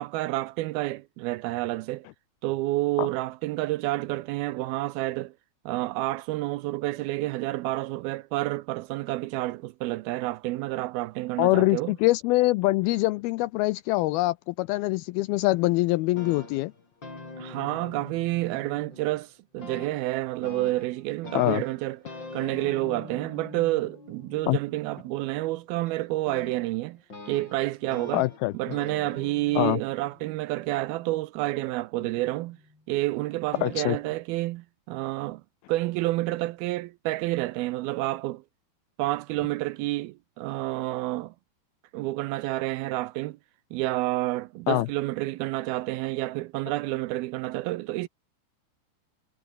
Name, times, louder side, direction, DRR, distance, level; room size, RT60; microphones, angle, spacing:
voice 1, 0.0-2.1 2.4-5.3 5.7-11.9 17.4-22.0 22.3-27.0 27.3-28.3 28.5-32.6 32.9-35.4 35.7-38.4 39.0-41.3 41.9-43.4 43.7-48.1, right 18 dB, 80° right, 2.3 m, -29 dB
voice 2, 11.4-16.7 21.3-21.6 24.5-24.6 28.1-28.5 29.6-29.8 33.6-34.0 44.7-44.9, left 19 dB, 85° left, 2.2 m, -24 dB
sound 1, 16.0-19.3 19.6-31.2 32.0-32.8 33.5-33.9, left 3 dB, 25° left, 6.2 m, -45 dB
omnidirectional pair, 4.8 m